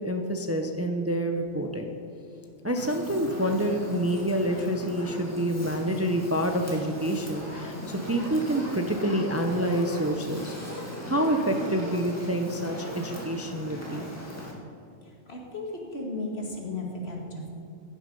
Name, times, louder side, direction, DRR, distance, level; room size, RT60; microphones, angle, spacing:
voice 1, 0.0-1.9 2.6-10.6 11.1-14.1, right 1 dB, 15° right, 4 dB, 0.7 m, -27 dB
Fire, 2.8-14.5, equal, 15° left, 2.2 m, -38 dB
voice 2, 15.0-17.5, left 2 dB, 60° left, -1 dB, 2.4 m, -35 dB
16.0 x 10.0 x 5.4 m, 2.5 s
omnidirectional pair, 1.2 m